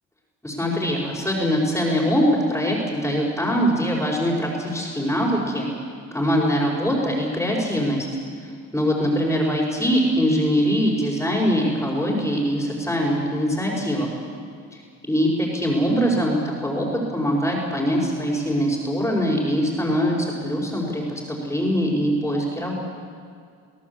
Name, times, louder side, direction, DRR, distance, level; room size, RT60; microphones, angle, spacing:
voice 1, 0.4-5.7 6.1-8.1 8.7-14.1 15.0-16.9 17.1-22.7, equal, 5° left, -6 dB, 5.2 m, -22 dB
24.0 x 17.0 x 8.3 m, 2.3 s
cardioid pair, 90°, 30 cm